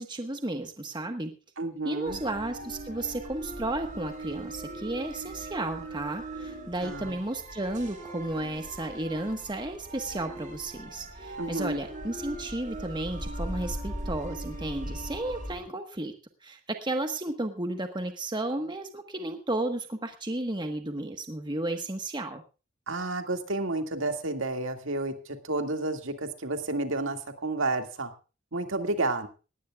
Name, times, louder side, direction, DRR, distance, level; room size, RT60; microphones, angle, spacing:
voice 1, 0.0-1.3 1.8-16.1 16.4-22.4, right 2 dB, 20° right, 5 dB, 1.4 m, -33 dB
voice 2, 1.6-2.2 6.8-7.2 11.4-11.8 22.9-28.1 28.5-29.3, right 2 dB, 65° right, 6 dB, 2.2 m, -31 dB
sound 1, 2.0-15.6, right 1 dB, 40° right, 8.0 m, -39 dB
19.0 x 17.0 x 2.4 m, 0.33 s
head